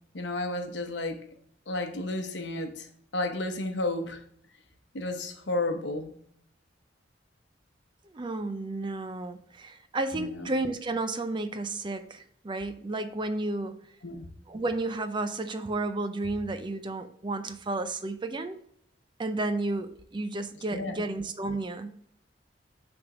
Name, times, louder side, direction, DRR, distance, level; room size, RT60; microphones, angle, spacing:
voice 1, 0.1-1.2 1.7-2.9 3.1-4.2 4.9-6.1 10.1-10.5 14.0-14.2 20.7-21.0, left 2 dB, 70° left, 0.9 m, -32 dB
voice 2, 8.1-13.8 14.5-18.6 19.2-21.9, right 2 dB, 25° right, 0.4 m, -32 dB
6.5 x 3.5 x 5.9 m
head